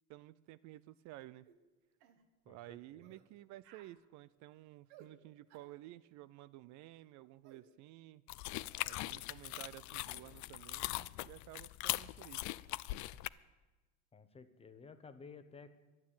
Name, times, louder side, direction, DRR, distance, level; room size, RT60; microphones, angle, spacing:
voice 1, 0.1-1.4 2.5-8.2 8.8-12.6, right 16 dB, 55° right, 17 dB, 0.5 m, -53 dB
sound 1, 1.5-1.6 2.0-2.2 3.0-3.3 3.6-3.9 4.9-5.1 5.5-5.7 7.4-7.6, right 10 dB, 80° right, 1.7 m, -60 dB
voice 2, 2.5-3.0 14.1-15.7, left 5 dB, 15° left, 10 dB, 1.0 m, -55 dB
sound 2, 8.3-13.3, left 19 dB, 55° left, 0.5 m, -41 dB
12.0 x 10.5 x 8.5 m, 1.2 s
cardioid pair, 140°, 36 cm